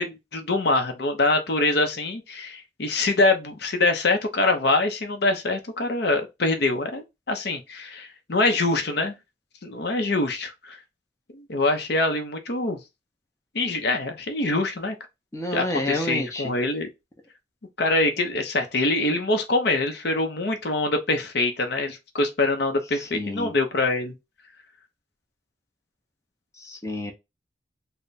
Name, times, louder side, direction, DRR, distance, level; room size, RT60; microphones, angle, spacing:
voice 1, 0.0-9.1 9.6-10.8 11.3-12.8 13.5-15.0 15.5-16.9 17.8-24.1, left 2 dB, 60° left, 0.7 m, -24 dB
voice 2, 15.3-16.5 23.1-23.5 26.6-27.1, left 1 dB, 15° left, 0.7 m, -29 dB
3.3 x 2.1 x 4.0 m
head